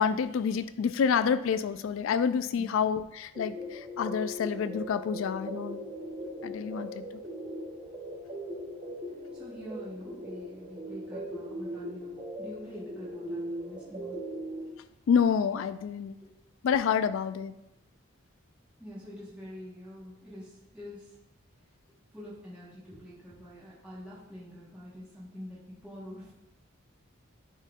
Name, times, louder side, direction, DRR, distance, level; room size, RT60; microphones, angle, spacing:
voice 1, 0.0-5.8 6.4-7.0 15.1-16.2 16.6-17.5, left 7 dB, 75° left, 13 dB, 0.3 m, -28 dB
sound 1, 3.4-14.6, equal, 20° right, 0.8 m, -39 dB
voice 2, 9.3-14.2 16.2-16.3 18.8-21.2 22.1-26.3, equal, 5° right, -9 dB, 1.3 m, -46 dB
9.7 x 4.1 x 2.5 m, 0.89 s
head